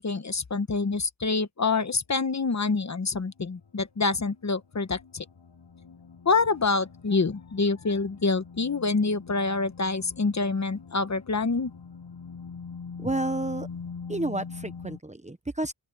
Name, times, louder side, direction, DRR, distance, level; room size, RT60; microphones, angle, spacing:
voice 1, 0.0-5.3 6.2-11.7, left 4 dB, 40° left, 1.1 m, -26 dB
sound 1, 2.8-15.0, left 5 dB, 70° left, 5.8 m, -44 dB
voice 2, 13.0-13.7 14.1-15.7, right 2 dB, 15° right, 1.0 m, -30 dB
open air
wide cardioid pair, 110°, 43 cm